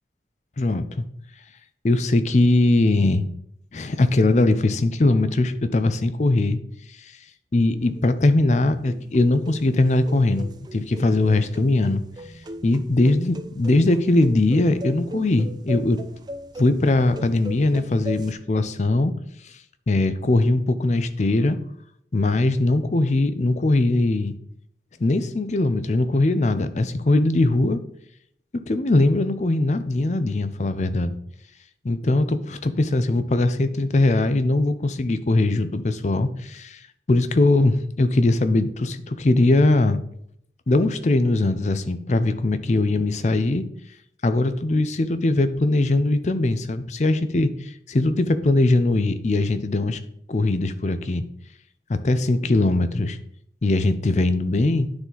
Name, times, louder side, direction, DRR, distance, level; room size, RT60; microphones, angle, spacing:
voice 1, 0.6-1.0 1.8-3.2 3.7-6.6 7.0-7.1 7.5-12.0 12.6-16.0 16.6-19.1 19.4-19.5 19.9-21.6 22.1-24.3 25.0-27.8 28.7-31.2 31.8-36.8 37.1-40.0 40.7-43.6 44.2-50.0 50.3-51.2 51.9-53.2 53.6-54.9, left 2 dB, 40° left, 11 dB, 0.5 m, -21 dB
sound 1, 7.6-18.3, equal, 25° right, 0.4 m, -39 dB
9.7 x 4.1 x 3.9 m, 0.71 s
head